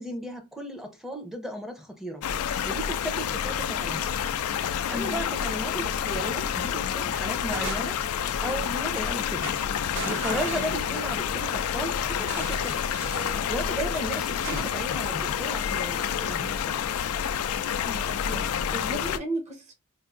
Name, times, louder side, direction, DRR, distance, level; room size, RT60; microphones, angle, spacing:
voice 1, 0.0-2.2 2.6-4.1 4.9-8.0 8.4-9.5 10.1-12.8 13.5-16.8, right 1 dB, ahead, 0.6 m, -35 dB
sound 1, 2.2-19.2, left 8 dB, 90° left, 0.4 m, -29 dB
voice 2, 4.9-5.2 10.5-10.8 17.8-19.7, right 1 dB, 35° right, 0.9 m, -35 dB
sound 2, 6.2-6.7 7.1-8.2 8.9-9.1 9.4-11.3 12.2-13.5 14.4-15.4, right 2 dB, 60° right, 1.1 m, -38 dB
4.6 x 2.5 x 2.5 m
head